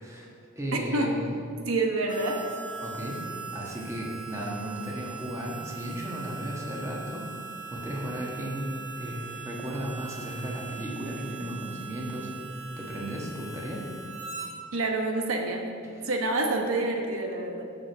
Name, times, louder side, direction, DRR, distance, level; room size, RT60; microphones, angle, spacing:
voice 1, 0.0-1.4 2.8-3.2 3.5-7.3 7.7-13.8 15.8-16.1, equal, 15° right, -3 dB, 1.4 m, -35 dB
voice 2, 0.7-1.1 1.7-2.4 14.7-15.7 16.0-17.6, right 2 dB, 85° right, 2 dB, 1.0 m, -27 dB
Harmonica, 2.1-14.5, right 5 dB, 35° right, 2.0 m, -41 dB
7.4 x 6.4 x 7.2 m, 2.4 s
head